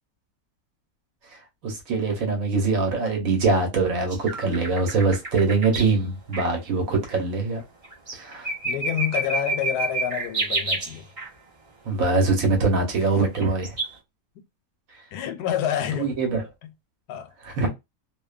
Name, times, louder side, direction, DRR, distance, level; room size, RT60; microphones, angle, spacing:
voice 1, 1.3-7.6 8.1-8.5 11.9-13.8 14.9-15.0 15.9-16.5 17.4-17.7, right 3 dB, 65° right, 1.2 m, -23 dB
sound 1, 4.1-5.9 6.3-6.4 7.1-7.2 7.8-11.3 13.3-13.9, right 2 dB, 30° right, 0.8 m, -28 dB
voice 2, 8.6-11.1 15.1-16.1 16.6-16.7 17.1-17.3, left 10 dB, 90° left, 1.1 m, -28 dB
2.7 x 2.2 x 2.3 m
omnidirectional pair, 1.6 m